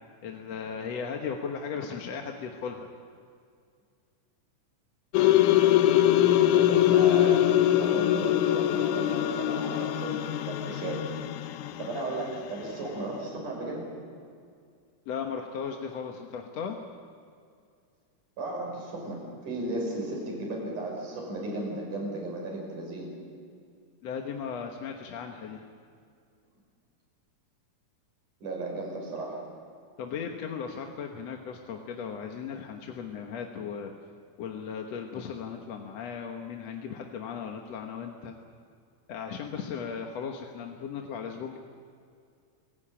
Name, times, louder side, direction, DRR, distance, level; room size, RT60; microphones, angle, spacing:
voice 1, 0.2-2.9 15.1-16.8 24.0-25.7 30.0-33.9 34.4-38.4 39.1-41.6, left 6 dB, 60° left, 3 dB, 2.2 m, -36 dB
sound 1, 5.1-12.3, left 12 dB, 80° left, 2.3 m, -23 dB
voice 2, 6.6-11.1 11.8-13.9 18.4-23.1 28.4-29.4, right 2 dB, 75° right, 0 dB, 7.3 m, -35 dB
26.0 x 17.0 x 8.8 m, 2.3 s
omnidirectional pair, 3.7 m